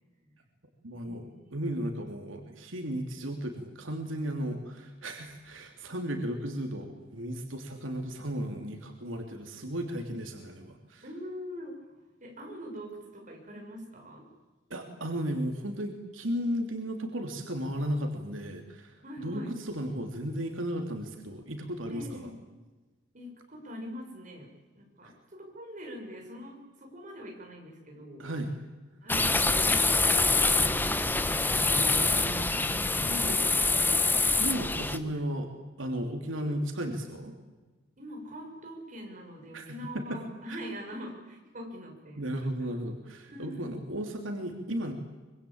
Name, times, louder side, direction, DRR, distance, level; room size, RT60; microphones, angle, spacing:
voice 1, 0.8-11.0 14.7-22.3 25.0-25.1 28.2-28.5 31.7-32.5 32.9-33.4 33.9-34.0 34.4-35.5 35.8-37.3 39.5-40.2 40.5-40.6 42.2-44.9, equal, 90° right, 4 dB, 3.1 m, -35 dB
voice 2, 11.0-11.9 12.2-14.3 19.0-19.5 21.9-22.3 23.1-28.3 29.0-31.3 33.0-33.6 36.4-36.9 38.0-42.3 42.6-42.8 43.3-43.8, equal, 40° right, 2 dB, 6.9 m, -43 dB
sound 1, 29.1-35.0, left 3 dB, 10° left, 1.2 m, -25 dB
25.0 x 24.5 x 8.8 m, 1.2 s
head